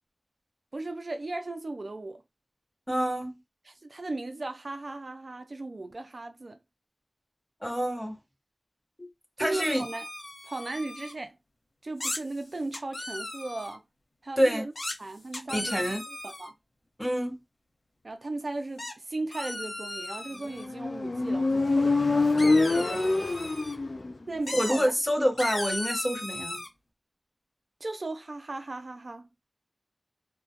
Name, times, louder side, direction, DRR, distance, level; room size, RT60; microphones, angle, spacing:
voice 1, 0.7-2.2 3.7-6.6 9.4-10.1 10.4-11.4 11.8-13.8 14.2-14.7 15.0-15.9 16.2-16.6 18.0-22.0 22.3-23.2 24.3-24.9 27.8-29.4, right 2 dB, 60° right, 0.3 m, -37 dB
voice 2, 2.9-3.4 7.6-8.2 9.0-9.1 9.4-9.8 14.4-14.6 15.5-16.0 17.0-17.4 24.5-26.6, equal, 5° left, 0.9 m, -27 dB
sound 1, 9.5-11.1 12.0-12.2 12.7-13.8 14.7-14.9 15.3-16.5 18.8-18.9 19.3-20.6 22.4-23.7 24.5-24.9 25.4-26.7, left 1 dB, 70° left, 0.8 m, -36 dB
Motorcycle, 20.6-24.2, left 3 dB, 55° left, 0.3 m, -25 dB
2.2 x 2.1 x 2.7 m
wide cardioid pair, 60°, 0 cm